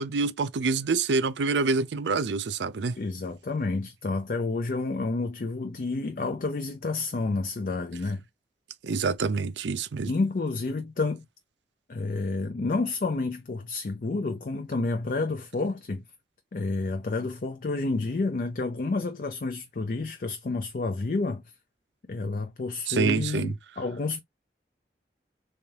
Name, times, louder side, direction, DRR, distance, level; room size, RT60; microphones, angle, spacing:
voice 1, 0.0-2.9 8.8-10.1 22.9-23.5, right 4 dB, 90° right, 0.5 m, -26 dB
voice 2, 3.0-8.2 10.1-11.2 11.9-16.0 16.5-21.4 22.1-24.2, left 3 dB, 50° left, 0.5 m, -29 dB
3.4 x 3.3 x 2.8 m
head